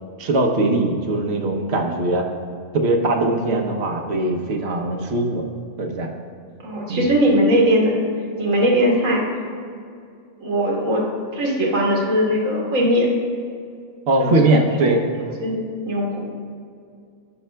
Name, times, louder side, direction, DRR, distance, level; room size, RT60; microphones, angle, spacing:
voice 1, 0.2-2.2 2.7-5.4 5.8-6.1 6.9-7.1 14.1-15.0, right 2 dB, 60° right, 2 dB, 1.1 m, -20 dB
voice 2, 6.6-7.9 8.4-9.2 10.4-11.0 11.3-13.1 14.2-14.9 15.4-15.6 15.8-16.2, equal, 75° right, -3 dB, 1.7 m, -19 dB
15.5 x 5.5 x 2.2 m, 2.3 s
omnidirectional pair, 1.3 m